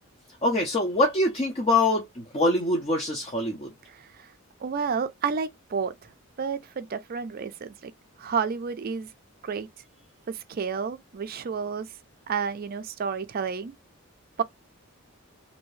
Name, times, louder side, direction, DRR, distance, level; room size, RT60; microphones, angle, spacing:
voice 1, 0.4-3.7, left 2 dB, 30° left, 0.6 m, -24 dB
voice 2, 3.9-4.3 4.6-6.1 6.4-7.9 8.2-9.1 9.4-9.7 10.3-11.9 12.3-13.7 14.4-14.5, right 6 dB, 45° right, 0.4 m, -30 dB
2.7 x 2.6 x 3.1 m
head